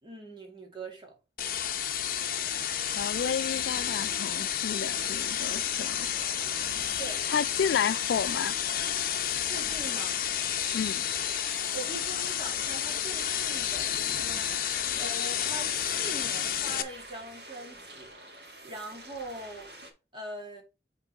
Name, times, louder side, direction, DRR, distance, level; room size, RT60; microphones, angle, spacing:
voice 1, 0.0-1.2 7.0-7.2 9.5-10.2 11.7-19.7 20.1-20.6, right 2 dB, 30° right, 2.2 m, -42 dB
sound 1, 1.4-16.8, left 10 dB, 55° left, 0.7 m, -31 dB
voice 2, 3.0-6.1 7.3-8.5 10.7-11.0, left 7 dB, 75° left, 0.3 m, -31 dB
sound 2, 5.2-19.9, right 2 dB, 70° right, 2.0 m, -48 dB
6.0 x 3.8 x 5.1 m
head